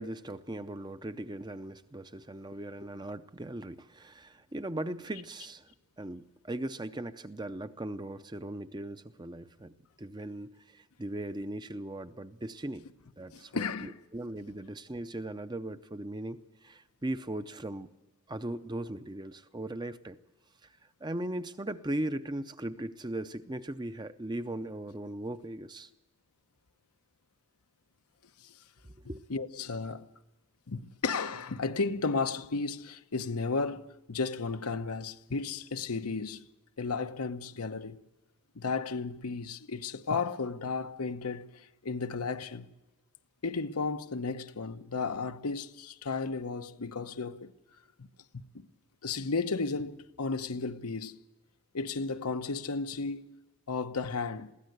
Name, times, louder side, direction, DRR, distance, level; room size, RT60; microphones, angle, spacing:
voice 1, 0.0-5.7 6.0-12.9 13.2-17.9 18.3-20.2 21.0-25.9 28.8-29.2, right 1 dB, 20° right, 0.6 m, -38 dB
voice 2, 13.3-14.0 28.4-28.6 29.3-30.1 30.7-36.5 36.8-38.0 38.5-42.7 43.4-47.5 48.0-48.1 48.3-48.7 49.0-51.2 51.7-53.3 53.7-54.5, left 4 dB, 90° left, 0.9 m, -34 dB
22.0 x 16.5 x 8.0 m
head